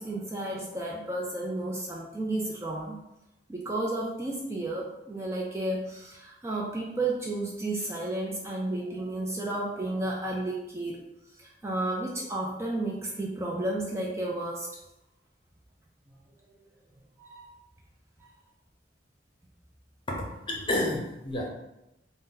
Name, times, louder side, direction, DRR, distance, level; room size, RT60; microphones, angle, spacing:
voice 1, 0.0-2.9 3.5-11.0 11.4-14.7 17.2-17.5 18.2-18.3, right 2 dB, 15° right, -3 dB, 0.3 m, -32 dB
voice 2, 20.1-21.5, left 1 dB, 30° left, -2 dB, 0.6 m, -30 dB
2.6 x 2.1 x 3.7 m, 0.89 s
head